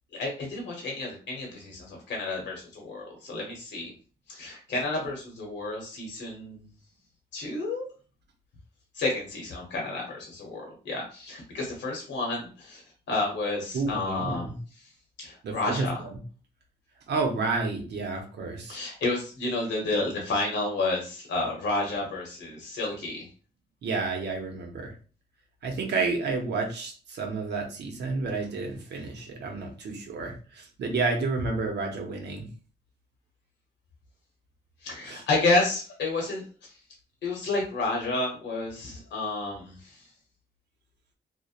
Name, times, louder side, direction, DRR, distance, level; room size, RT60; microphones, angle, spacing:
voice 1, 0.1-3.9 4.3-6.6 7.3-7.8 8.9-12.8 13.1-14.5 15.2-16.0 18.7-23.3 34.8-36.4 37.2-40.0, left 2 dB, 75° left, -1 dB, 0.8 m, -30 dB
voice 2, 13.7-14.6 15.4-16.2 17.1-18.8 23.8-24.9 25.6-32.5 35.0-35.2, right 3 dB, 70° right, 3 dB, 0.7 m, -30 dB
2.7 x 2.1 x 2.4 m, 0.38 s
cardioid pair, 105°, 18 cm